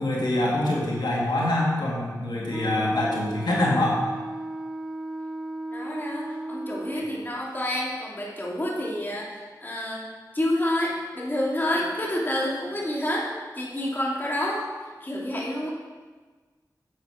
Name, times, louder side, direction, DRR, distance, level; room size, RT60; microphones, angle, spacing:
voice 1, 0.0-4.0 6.9-7.0, left 1 dB, 90° left, -4 dB, 2.3 m, -25 dB
Wind instrument woodwind instrument, 2.5-7.4, right 1 dB, 10° right, 0.7 m, -34 dB
voice 2, 5.7-10.1 10.3-14.7 15.0-15.7, left 1 dB, 25° left, -4 dB, 2.6 m, -28 dB
10.5 x 8.1 x 5.0 m, 1.4 s
wide cardioid pair, 75°, 7 cm